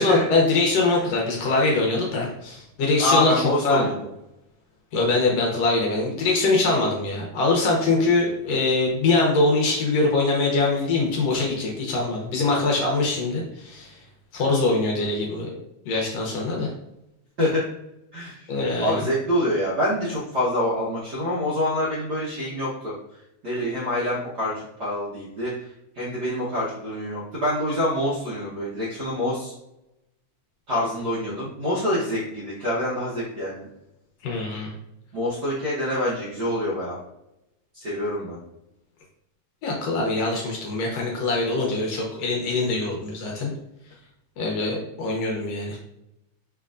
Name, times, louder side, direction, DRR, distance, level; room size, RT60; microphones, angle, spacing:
voice 1, 0.0-3.9 4.9-14.0 14.3-15.6 15.9-16.7 18.5-19.0 34.2-34.7 39.6-43.5 44.4-45.8, left 3 dB, 70° left, -1 dB, 1.7 m, -23 dB
voice 2, 3.0-4.0 17.4-17.6 18.1-18.5 18.8-22.9 23.4-24.5 24.8-25.7 25.9-29.5 30.7-33.6 35.1-37.0 37.7-38.4, left 1 dB, 60° right, -8 dB, 1.1 m, -26 dB
5.8 x 3.4 x 2.4 m, 0.86 s
omnidirectional pair, 3.3 m